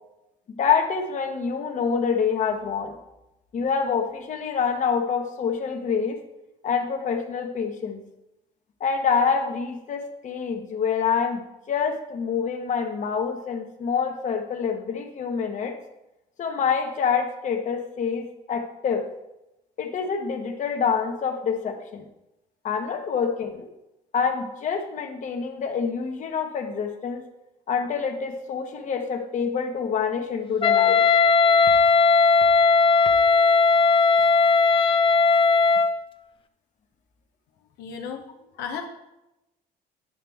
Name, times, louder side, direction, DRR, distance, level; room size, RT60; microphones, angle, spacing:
voice 1, 0.6-2.9 3.5-6.2 6.6-8.0 8.8-15.8 16.4-19.1 19.8-22.1 22.6-23.7 24.1-27.2 27.7-31.0, left 6 dB, 45° left, 4 dB, 1.1 m, -26 dB
Wind instrument woodwind instrument, 30.6-36.0, left 4 dB, 30° left, 0.5 m, -18 dB
voice 2, 37.8-38.8, left 6 dB, 85° left, 3 dB, 0.8 m, -35 dB
9.6 x 5.8 x 3.5 m, 0.92 s
cardioid pair, 110°, 17 cm